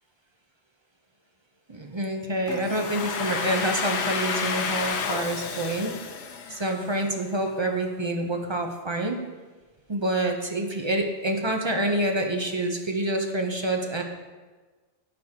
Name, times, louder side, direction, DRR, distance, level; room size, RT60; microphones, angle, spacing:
voice 1, 1.7-5.9 6.5-9.2 9.9-14.0, right 1 dB, 30° right, 3 dB, 0.6 m, -27 dB
Domestic sounds home sounds, 2.5-7.2, left 5 dB, 70° left, 0.9 m, -31 dB
11.0 x 6.4 x 2.8 m, 1.3 s
omnidirectional pair, 1.2 m